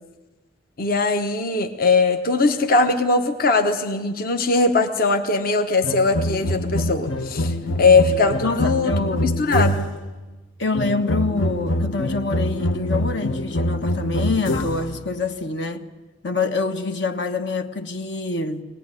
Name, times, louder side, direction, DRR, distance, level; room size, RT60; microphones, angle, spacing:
voice 1, 0.8-9.8, left 3 dB, 50° left, 1.2 m, -20 dB
sound 1, 5.8-10.1 10.7-15.0, left 1 dB, 85° left, 1.3 m, -25 dB
voice 2, 8.4-9.3 10.6-15.8 16.2-18.6, left 3 dB, 65° left, 1.3 m, -26 dB
23.5 x 18.5 x 9.8 m
head